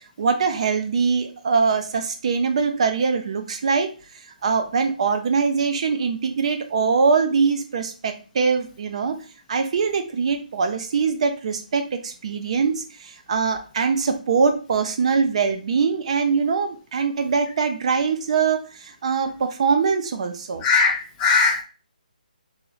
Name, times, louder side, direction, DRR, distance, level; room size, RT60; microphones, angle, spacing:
voice 1, 0.0-3.9 4.4-9.2 9.5-20.6, right 5 dB, 45° right, 6 dB, 0.6 m, -22 dB
voice 2, 20.6-21.6, left 4 dB, 15° left, 1 dB, 0.5 m, -19 dB
2.9 x 2.8 x 3.9 m, 0.36 s
figure-of-eight pair, 155°, 5 cm